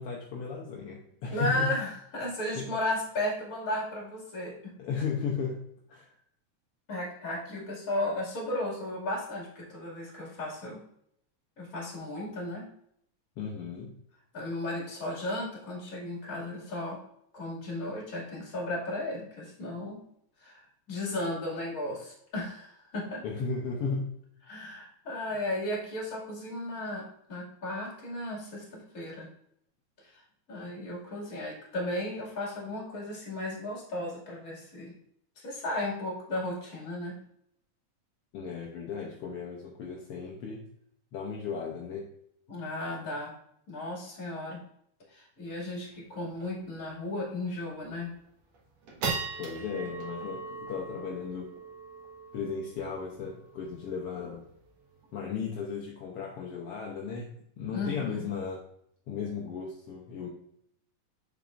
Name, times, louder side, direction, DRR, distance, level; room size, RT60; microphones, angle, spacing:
voice 1, 0.0-1.7 2.5-2.7 4.8-5.6 5.9-6.1 13.4-13.9 23.2-24.1 38.3-40.6 41.1-42.1 49.4-51.5 52.3-54.5 55.1-58.6 59.1-60.3, left 5 dB, 70° left, -1 dB, 1.4 m, -35 dB
voice 2, 1.3-4.7 6.9-10.8 11.6-12.7 14.3-17.0 17.3-20.0 20.4-20.6 20.9-23.2 24.5-28.6 28.9-29.3 30.0-30.2 30.5-34.9 35.4-37.2 42.5-43.4 43.7-44.6 45.1-48.1 57.7-58.3, left 1 dB, 30° left, -4 dB, 2.3 m, -35 dB
sound 1, 45.5-45.6 45.9-46.0 46.4-46.6 47.1-47.2 47.7-48.1 48.5-55.1, right 4 dB, 60° right, 2.4 m, -39 dB
7.0 x 6.0 x 2.5 m, 0.70 s
omnidirectional pair, 3.6 m